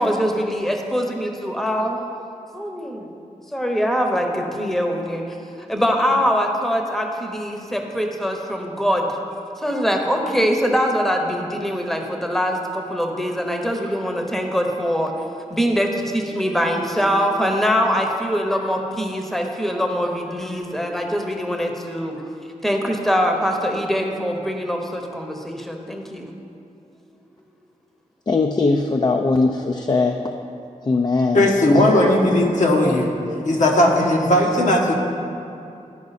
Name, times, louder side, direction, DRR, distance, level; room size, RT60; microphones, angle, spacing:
voice 1, 0.0-2.0 2.5-3.1 3.5-5.4 5.7-9.1 9.6-15.1 15.5-22.2 22.6-26.3, equal, ahead, 2 dB, 0.8 m, -23 dB
voice 2, 28.3-30.2 30.9-31.5 31.7-31.8, left 3 dB, 30° left, 3 dB, 0.4 m, -20 dB
voice 3, 31.3-33.1 33.4-35.0, left 1 dB, 65° left, 0 dB, 1.1 m, -17 dB
12.0 x 4.8 x 4.1 m, 2.6 s
cardioid pair, 65°, 14 cm